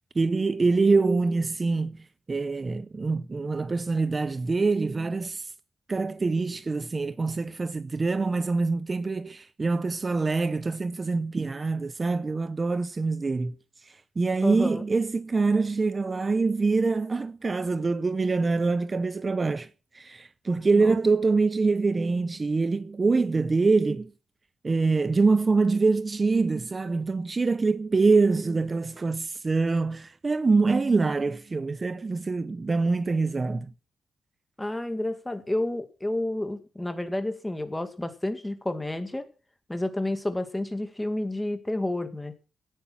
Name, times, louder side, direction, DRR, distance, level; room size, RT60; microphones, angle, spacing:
voice 1, 0.1-5.5 5.9-13.5 13.8-19.7 19.9-24.1 24.6-33.7, right 3 dB, 30° right, 0.7 m, -25 dB
voice 2, 14.4-14.8 20.8-21.0 34.6-39.2 39.7-42.3, left 1 dB, 10° left, 2.1 m, -30 dB
17.0 x 9.2 x 6.1 m
cardioid pair, 115°, 0 cm